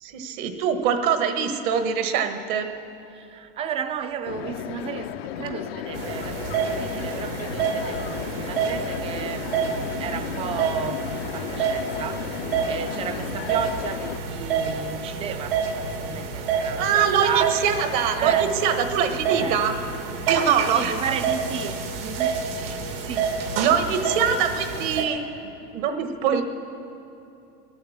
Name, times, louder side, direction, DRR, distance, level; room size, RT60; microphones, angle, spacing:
voice 1, 0.0-2.7 16.5-19.7 20.3-21.0 23.6-25.2 25.7-26.4, right 7 dB, 55° right, 1.3 m, -23 dB
voice 2, 3.1-17.5 18.2-18.5 19.4-19.7 20.7-23.3, right 8 dB, 20° right, 0.5 m, -33 dB
sound 1, 4.3-14.2, left 10 dB, 85° left, 0.7 m, -34 dB
sound 2, 5.9-25.0, right 5 dB, 75° right, 2.1 m, -28 dB
20.5 x 8.8 x 7.2 m
supercardioid pair, 155°, 30 cm